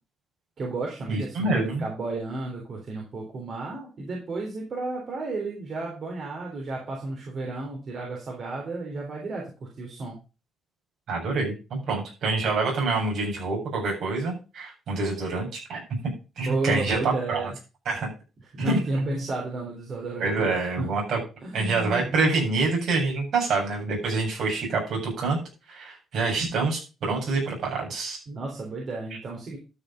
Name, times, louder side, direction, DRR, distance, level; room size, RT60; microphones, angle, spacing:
voice 1, 0.6-10.2 16.4-17.5 18.5-20.5 20.8-20.9 21.4-22.1 28.3-29.6, right 2 dB, 50° right, -1 dB, 3.7 m, -32 dB
voice 2, 1.1-1.8 11.1-15.8 16.4-17.5 17.8-18.1 18.6-19.2 20.2-21.2 21.5-25.4 25.7-28.2, right 3 dB, 70° right, -1 dB, 7.9 m, -26 dB
12.5 x 6.3 x 5.1 m, 0.32 s
cardioid pair, 90°, 0 cm